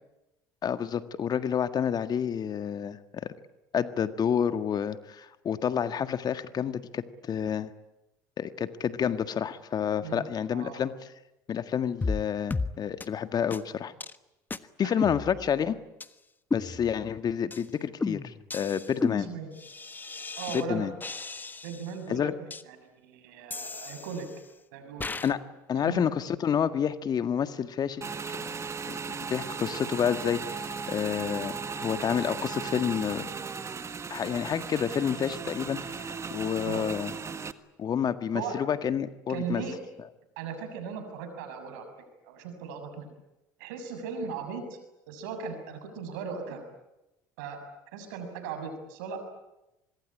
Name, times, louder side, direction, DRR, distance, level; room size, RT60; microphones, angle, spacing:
voice 1, 0.6-3.3 3.7-7.7 8.4-10.9 11.5-13.9 14.8-15.8 16.5-19.3 20.5-20.9 22.1-22.3 25.2-25.4 25.7-28.1 28.6-33.3 34.1-37.1 37.8-39.6, left 8 dB, 40° left, 11 dB, 1.8 m, -29 dB
sound 1, 12.0-12.2 12.5-12.7 13.0-13.1 13.5-13.6 14.0-14.2 14.5-14.6 15.0-15.6 16.0-16.1 16.5-17.1 17.5-17.7 18.0-20.6 21.0-21.9 22.5-22.6 23.5-24.5 25.0-25.3, left 3 dB, 20° left, 1.4 m, -34 dB
voice 2, 19.2-19.5 20.4-20.9 21.6-22.3 23.0-24.3 24.7-25.1 25.7-26.0 36.6-36.9 38.3-38.7 39.3-39.8 40.4-41.9 42.2-43.1 43.6-44.8 45.1-46.7 47.4-47.6 47.9-49.2, right 6 dB, 80° right, 7 dB, 6.7 m, -37 dB
Motorcycle / Engine, 28.0-37.5, right 5 dB, 30° right, 1.7 m, -36 dB
25.0 x 21.5 x 10.0 m, 0.93 s
hypercardioid pair, 80°, 10 cm